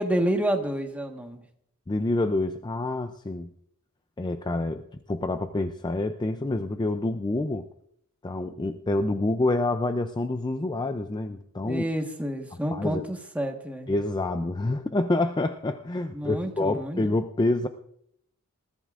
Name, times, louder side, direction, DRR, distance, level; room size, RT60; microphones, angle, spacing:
voice 1, 0.0-1.4 11.6-13.9 16.1-17.0, right 1 dB, 5° right, 3 dB, 1.4 m, -29 dB
voice 2, 1.9-3.5 4.2-7.7 8.2-11.8 12.7-13.0 13.9-17.7, left 2 dB, 20° left, 8 dB, 0.5 m, -27 dB
21.0 x 14.5 x 2.5 m, 0.70 s
head